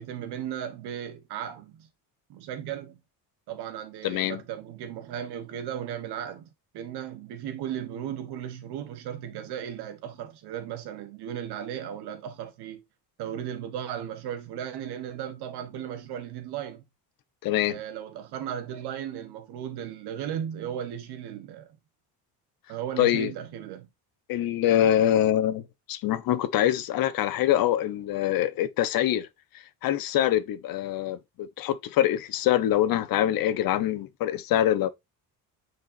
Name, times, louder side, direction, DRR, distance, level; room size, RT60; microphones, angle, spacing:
voice 1, 0.0-1.9 2.3-3.0 3.5-6.5 6.7-12.8 13.2-16.8 17.7-21.8 22.7-23.9, right 9 dB, 85° right, 1.4 m, -36 dB
voice 2, 4.0-4.4 17.4-17.7 23.0-23.3 24.3-25.6 25.9-29.3 29.8-34.9, left 12 dB, 60° left, 1.0 m, -24 dB
8.8 x 4.6 x 2.7 m
cardioid pair, 170°, 38 cm